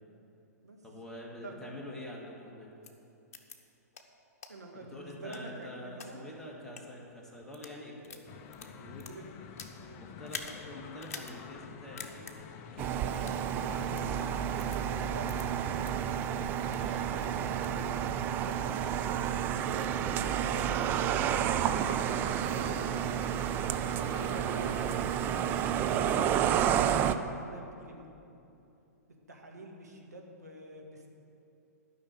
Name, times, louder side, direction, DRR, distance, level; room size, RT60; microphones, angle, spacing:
voice 1, 0.8-2.7 4.7-9.2 10.0-13.5 16.8-17.0 24.1-24.3, left 1 dB, 5° left, -4 dB, 1.8 m, -46 dB
voice 2, 1.4-1.8 4.5-6.3 9.1-9.3 9.8-10.0 13.0-16.0 16.9-17.8 18.3-18.7 19.6-22.8 23.8-28.1 29.3-31.1, right 2 dB, 75° right, 1 dB, 1.6 m, -47 dB
sound 1, 2.8-2.9 3.3-3.6 3.9-4.0 4.4-4.5 5.1-6.1 6.6-6.8 7.4-7.8 8.0-9.8 10.2-10.5 11.0-11.3 11.6-11.7 12.0-12.3 13.1-13.4 13.9-14.0 14.6-14.8 15.3-15.4 15.8-15.9 16.4-16.9 17.2-17.8, left 5 dB, 55° left, 1.0 m, -45 dB
sound 2, 8.3-26.6, left 7 dB, 30° left, 0.5 m, -50 dB
sound 3, 12.8-27.1, right 9 dB, 20° right, 0.3 m, -30 dB
12.0 x 5.8 x 8.3 m, 2.7 s
figure-of-eight pair, 110°, 9 cm